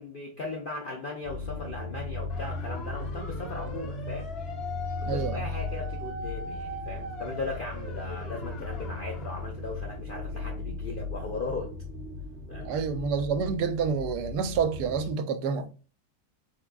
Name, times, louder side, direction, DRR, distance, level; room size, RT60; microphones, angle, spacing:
voice 1, 0.0-4.3 4.9-11.7 12.5-12.7, left 3 dB, 75° left, 0.4 m, -37 dB
sound 1, 1.2-15.1, left 3 dB, 50° right, 0.9 m, -37 dB
sound 2, 2.3-9.5, left 1 dB, 50° left, 0.8 m, -41 dB
voice 2, 5.0-5.4 12.6-15.7, right 6 dB, 85° right, 1.2 m, -28 dB
3.5 x 3.4 x 2.2 m
omnidirectional pair, 1.8 m